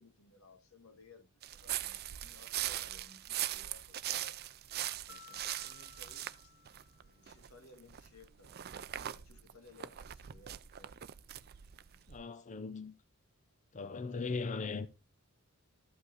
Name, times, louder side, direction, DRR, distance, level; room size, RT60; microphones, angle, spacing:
voice 1, 0.0-4.4 5.1-6.5 7.0-8.6 9.1-11.0, left 3 dB, 85° left, 1.7 m, -60 dB
sound 1, 1.4-7.5 7.9-12.2, right 12 dB, 50° right, 0.5 m, -41 dB
Mallet percussion, 5.1-7.5, left 8 dB, 10° right, 2.2 m, -58 dB
voice 2, 12.1-12.9 13.7-14.9, left 4 dB, 35° left, 0.5 m, -38 dB
13.5 x 5.4 x 3.9 m
head